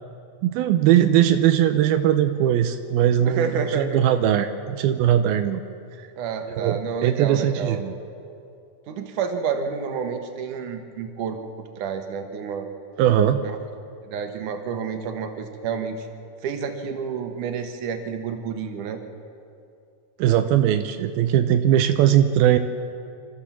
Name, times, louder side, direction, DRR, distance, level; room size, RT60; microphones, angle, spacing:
voice 1, 0.4-5.6 6.5-7.9 13.0-13.4 20.2-22.6, right 11 dB, 85° right, 7 dB, 2.6 m, -20 dB
voice 2, 3.2-4.0 6.2-7.8 8.9-11.4 11.8-12.7 13.4-13.6 14.0-16.1 16.4-19.0, right 6 dB, 65° right, 5 dB, 2.7 m, -29 dB
28.0 x 13.0 x 7.3 m, 2.5 s
omnidirectional pair, 4.3 m